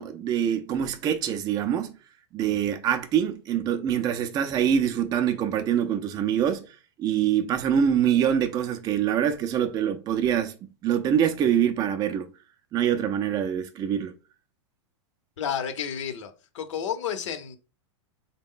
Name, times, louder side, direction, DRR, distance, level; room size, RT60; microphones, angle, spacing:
voice 1, 0.0-1.9 2.3-6.6 7.0-10.6 10.8-12.3 12.7-14.1, right 9 dB, 25° right, 0.4 m, -24 dB
voice 2, 15.4-17.6, left 8 dB, 75° left, 0.8 m, -31 dB
3.7 x 2.1 x 3.7 m
hypercardioid pair, 125°, 16 cm